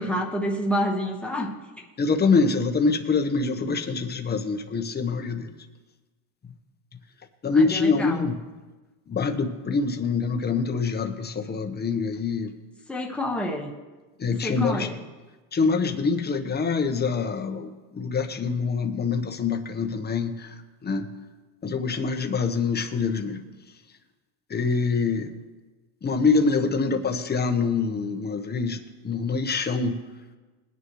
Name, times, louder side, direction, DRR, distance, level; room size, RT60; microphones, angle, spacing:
voice 1, 0.0-1.8 7.5-8.3 12.9-13.7 14.4-15.0, equal, 5° left, -1 dB, 1.4 m, -28 dB
voice 2, 2.0-5.5 7.4-8.4 9.1-12.5 14.2-14.9 15.5-21.1 21.6-23.4 24.5-25.3 26.0-30.0, left 4 dB, 20° left, 5 dB, 1.1 m, -25 dB
21.0 x 9.7 x 3.2 m, 1.3 s
cardioid pair, 130°, 47 cm